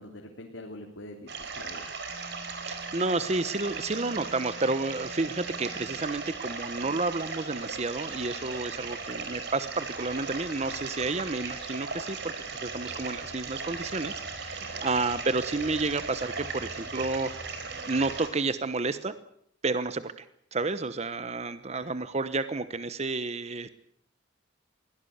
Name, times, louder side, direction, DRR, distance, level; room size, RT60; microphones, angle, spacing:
voice 1, 0.0-1.8 8.8-8.9 14.7-14.8 21.8-21.9, left 1 dB, 85° left, 1 dB, 3.1 m, -44 dB
sound 1, 1.3-18.3, right 4 dB, 60° right, 4.5 m, -37 dB
sound 2, 2.1-18.2, equal, 5° left, 4.2 m, -51 dB
voice 2, 2.6-17.3 17.9-19.1 19.6-20.2 20.5-23.7, right 3 dB, 35° right, 12 dB, 0.9 m, -31 dB
23.0 x 17.5 x 8.0 m, 0.68 s
head